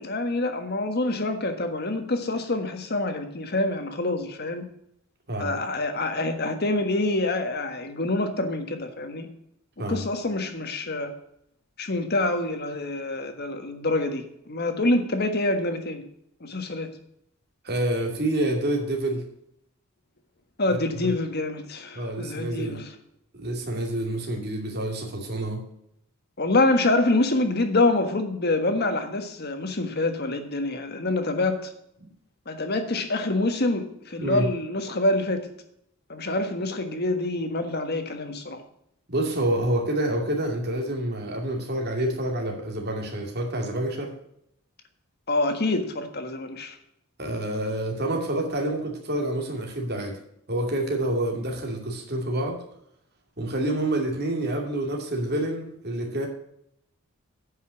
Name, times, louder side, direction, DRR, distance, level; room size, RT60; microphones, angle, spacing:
voice 1, 0.0-4.6 5.4-9.3 9.9-11.1 11.8-16.0 16.4-16.9 20.6-22.9 26.4-31.7 32.5-35.5 36.1-38.6 45.3-46.7, left 2 dB, 50° left, 7 dB, 1.4 m, -26 dB
voice 2, 17.6-19.2 20.7-20.8 21.0-21.2 21.9-22.8 23.3-25.6 34.2-34.5 39.1-44.1 47.2-50.2 50.5-52.6 53.4-56.3, right 1 dB, 50° right, 1 dB, 2.6 m, -28 dB
9.7 x 5.6 x 7.2 m, 0.73 s
head